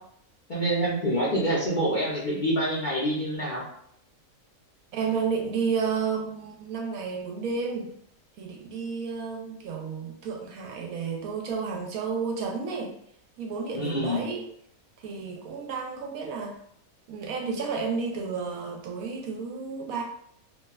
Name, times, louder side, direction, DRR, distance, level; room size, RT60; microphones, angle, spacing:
voice 1, 0.5-3.6 13.7-14.3, equal, 50° left, -7 dB, 0.6 m, -26 dB
voice 2, 4.9-7.9 8.4-12.9 13.4-14.4 15.0-16.6 17.1-20.0, right 5 dB, 85° right, 1 dB, 1.1 m, -31 dB
2.9 x 2.1 x 2.3 m, 0.67 s
omnidirectional pair, 1.5 m